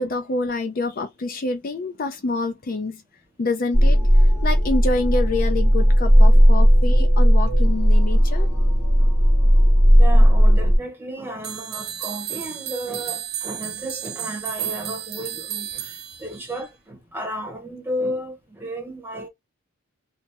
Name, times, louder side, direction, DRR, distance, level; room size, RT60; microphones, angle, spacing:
voice 1, 0.0-3.0 3.4-8.5, left 2 dB, 40° left, 0.4 m, -27 dB
sound 1, 3.7-10.8, equal, 20° left, 1.9 m, -15 dB
voice 2, 10.0-19.3, equal, 10° right, 0.8 m, -33 dB
sound 2, 11.4-16.7, right 10 dB, 45° right, 0.5 m, -32 dB
3.3 x 2.0 x 2.8 m
head